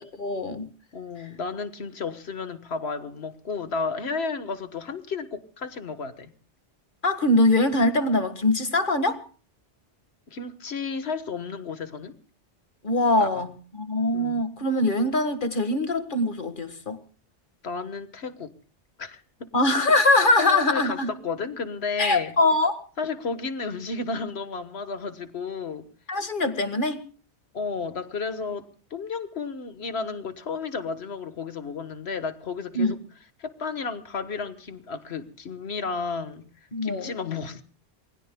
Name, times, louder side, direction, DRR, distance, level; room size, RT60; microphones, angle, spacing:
voice 1, 0.2-0.7 7.0-9.2 12.8-17.0 19.5-21.1 22.0-22.8 26.1-27.0 32.8-33.0 36.7-37.1, left 2 dB, 45° left, 1.8 m, -23 dB
voice 2, 0.9-6.3 10.3-12.1 13.2-13.3 14.1-14.4 17.6-18.5 19.0-19.5 20.4-21.0 21.2-22.3 23.0-25.9 27.5-33.0 33.4-36.5 36.8-37.6, left 4 dB, 65° left, 1.6 m, -32 dB
27.5 x 20.5 x 2.2 m
omnidirectional pair, 1.1 m